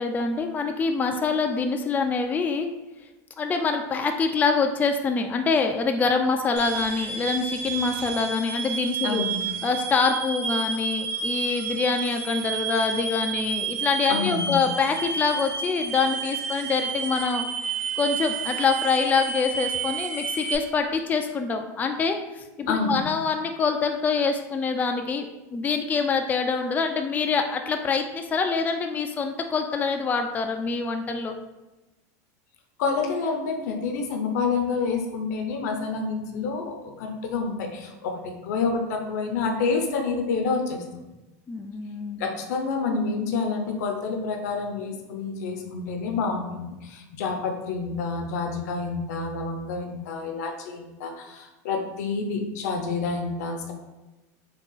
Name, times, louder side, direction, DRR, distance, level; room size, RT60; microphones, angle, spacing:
voice 1, 0.0-2.7 3.4-9.2 9.6-17.4 18.0-25.3 25.5-31.4 41.5-42.2, left 4 dB, 20° left, 5 dB, 0.3 m, -25 dB
sound 1, 6.6-20.6, right 5 dB, 70° right, 0.8 m, -31 dB
voice 2, 9.0-9.5 14.1-14.6 22.7-23.0 32.8-40.8 42.2-53.7, left 4 dB, 80° left, 4 dB, 0.7 m, -28 dB
3.7 x 2.3 x 3.8 m, 1.1 s
supercardioid pair, 115°, 9 cm